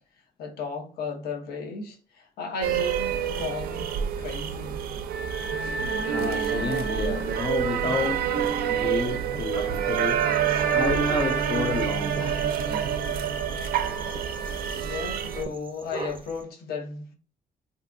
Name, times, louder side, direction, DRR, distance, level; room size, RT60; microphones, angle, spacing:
voice 1, 0.4-4.8 14.1-14.2 14.8-17.1, left 5 dB, 85° left, 0.7 m, -35 dB
sound 1, 2.6-15.4, right 8 dB, 85° right, 0.4 m, -27 dB
voice 2, 6.0-10.3 10.7-12.6, left 5 dB, 30° left, 0.4 m, -31 dB
sound 2, 9.9-16.4, right 3 dB, 35° right, 0.6 m, -44 dB
3.4 x 2.6 x 2.5 m
cardioid pair, 70°, 16 cm